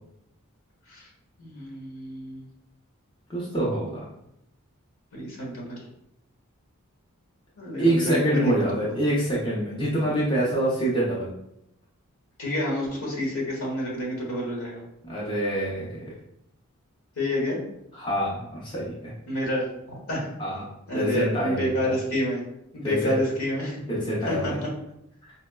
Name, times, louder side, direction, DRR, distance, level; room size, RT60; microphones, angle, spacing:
voice 1, 1.4-2.5 5.1-5.8 7.6-8.5 12.4-14.8 17.2-17.6 19.3-20.4 20.9-22.4 22.7-23.8 24.2-24.7, left 1 dB, 75° left, -2 dB, 1.1 m, -29 dB
voice 2, 3.3-4.1 7.8-11.3 15.0-15.9 17.9-19.1 20.4-20.6 20.9-21.9 22.8-23.1 23.9-24.6, right 1 dB, 20° left, -6 dB, 0.6 m, -25 dB
4.2 x 2.1 x 2.2 m, 0.80 s
head